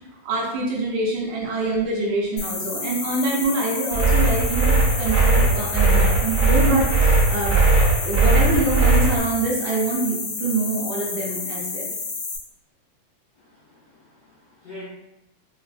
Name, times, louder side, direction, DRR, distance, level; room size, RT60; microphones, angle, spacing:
voice 1, 0.2-7.5 8.0-11.9, right 2 dB, 75° right, -3 dB, 1.9 m, -25 dB
sound 1, 2.4-12.4, left 4 dB, 75° left, 2.4 m, -30 dB
sound 2, 3.9-9.1, right 3 dB, 50° right, 1.1 m, -18 dB
voice 2, 13.5-14.8, left 1 dB, 90° left, -7 dB, 1.3 m, -45 dB
5.2 x 2.4 x 2.4 m, 0.91 s
omnidirectional pair, 3.7 m